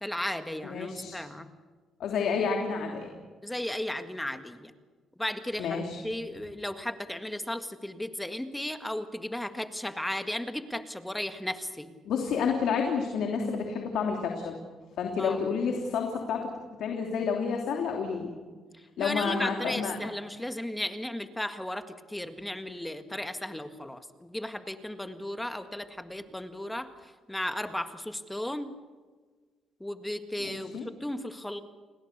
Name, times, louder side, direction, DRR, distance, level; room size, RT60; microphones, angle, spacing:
voice 1, 0.0-1.5 3.4-4.7 5.2-12.0 15.2-15.4 18.7-28.7 29.8-31.6, left 1 dB, 5° left, 8 dB, 1.8 m, -35 dB
voice 2, 0.7-1.2 2.0-3.1 5.6-6.0 12.0-14.6 15.0-16.4 16.8-18.3 19.0-19.9 30.4-30.8, left 6 dB, 75° left, 2 dB, 3.1 m, -29 dB
30.0 x 20.5 x 6.8 m, 1.4 s
cardioid pair, 90°, 0 cm